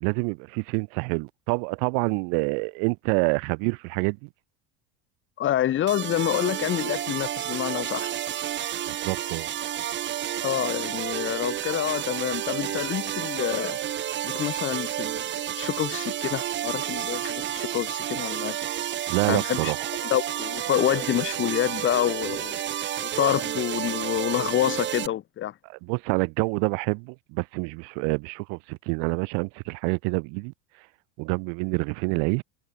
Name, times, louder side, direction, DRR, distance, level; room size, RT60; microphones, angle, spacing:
voice 1, 0.0-4.3 8.9-9.5 19.1-19.9 25.6-30.5 31.2-32.4, right 40 dB or more, 65° right, 1.4 m, -27 dB
voice 2, 5.4-8.1 10.4-13.8 14.2-18.6 19.3-19.7 20.1-22.6 23.0-25.5, left 12 dB, 40° left, 5.5 m, -27 dB
sound 1, 5.9-25.1, right 11 dB, 35° right, 3.6 m, -31 dB
supercardioid pair, 135°, 32 cm